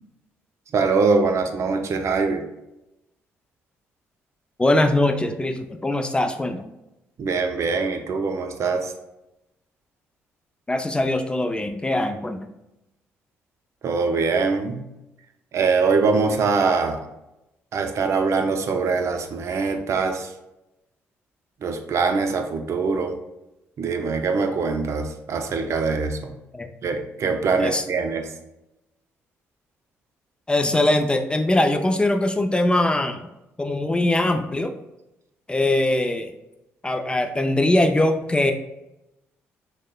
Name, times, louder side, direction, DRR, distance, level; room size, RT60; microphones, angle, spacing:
voice 1, 0.7-2.4 7.2-8.9 13.8-14.8 15.5-17.0 17.7-20.3 21.6-23.2 23.8-26.3 26.8-28.3, right 4 dB, 55° right, 6 dB, 0.5 m, -23 dB
voice 2, 4.6-6.6 10.7-12.5 26.5-26.7 27.6-27.8 30.5-33.3 33.6-34.7 35.5-36.3 36.8-38.5, left 1 dB, 15° left, 6 dB, 0.4 m, -21 dB
6.2 x 2.1 x 2.2 m, 0.92 s
supercardioid pair, 65°, 6 cm